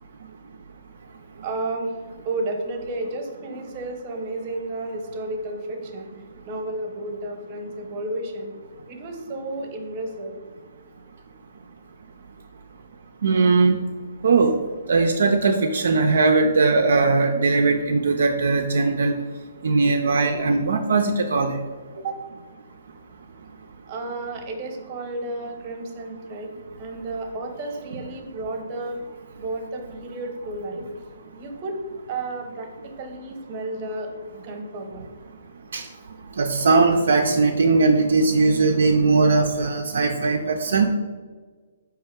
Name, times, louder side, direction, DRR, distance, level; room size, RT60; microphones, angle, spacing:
voice 1, 1.4-1.9 2.2-6.1 6.4-8.5 8.9-10.3 22.0-22.2 23.9-26.5 26.8-29.0 29.4-30.8 31.3-31.8 32.1-35.1, right 2 dB, 35° right, 3 dB, 0.8 m, -32 dB
voice 2, 13.2-13.8 14.2-14.5 14.9-19.1 19.6-21.5 35.7-35.8 36.4-40.9, right 3 dB, 70° right, 3 dB, 0.3 m, -19 dB
4.5 x 2.9 x 3.5 m, 1.4 s
hypercardioid pair, 135°, 0 cm